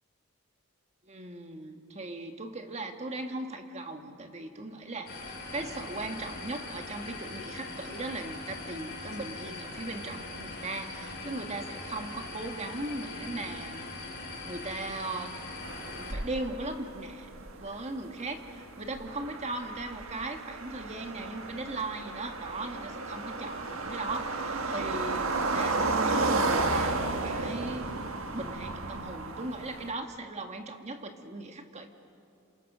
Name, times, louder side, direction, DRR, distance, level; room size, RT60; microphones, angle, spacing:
voice 1, 1.0-13.8 14.4-15.4 15.9-17.3 17.6-27.9 28.3-31.9, right 2 dB, 35° right, 5 dB, 1.6 m, -38 dB
sound 1, 5.1-16.1, left 2 dB, 50° left, 4.7 m, -41 dB
sound 2, 15.6-29.9, right 3 dB, 80° right, 1.6 m, -33 dB
27.0 x 27.0 x 6.2 m, 2.6 s
head